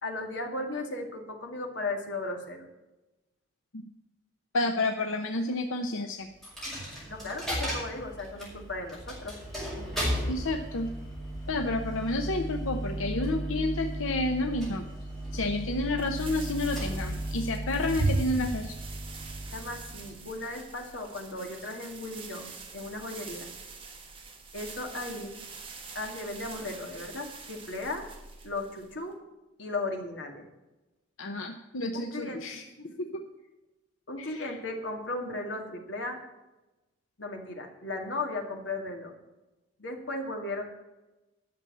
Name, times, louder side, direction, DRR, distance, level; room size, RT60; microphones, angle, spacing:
voice 1, 0.0-2.7 7.1-9.4 19.5-23.5 24.5-25.4 25.9-28.1 28.4-29.2 29.6-30.5 31.9-32.9 34.1-36.2 37.2-39.1 39.8-40.6, left 2 dB, 65° left, 2 dB, 2.3 m, -36 dB
voice 2, 4.5-6.3 10.3-10.9 11.5-14.8 15.3-18.7 31.2-32.6 33.0-33.2 34.2-34.6, left 2 dB, 85° left, 4 dB, 0.9 m, -30 dB
Coin (dropping), 6.4-20.2, right 1 dB, ahead, 5.6 m, -34 dB
sound 1, 16.0-29.1, right 5 dB, 25° right, 1.6 m, -46 dB
11.5 x 7.0 x 8.4 m, 1.1 s
head